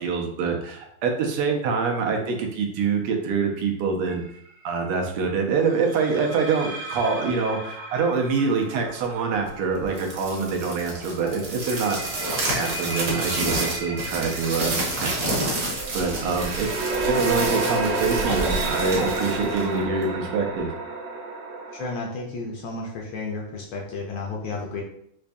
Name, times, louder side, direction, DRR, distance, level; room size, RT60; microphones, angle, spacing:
voice 1, 0.0-4.2 4.6-12.2 12.5-15.5 15.9-20.7, right 4 dB, 85° right, 2 dB, 1.6 m, -25 dB
sound 1, 4.1-4.4 5.9-10.6 11.4-21.9, right 3 dB, 70° right, 1.3 m, -32 dB
sound 2, 9.8-20.2, right 1 dB, 55° right, 1.0 m, -29 dB
voice 2, 21.7-24.8, left 3 dB, 70° left, -1 dB, 1.2 m, -32 dB
5.0 x 2.6 x 2.2 m, 0.71 s
omnidirectional pair, 2.4 m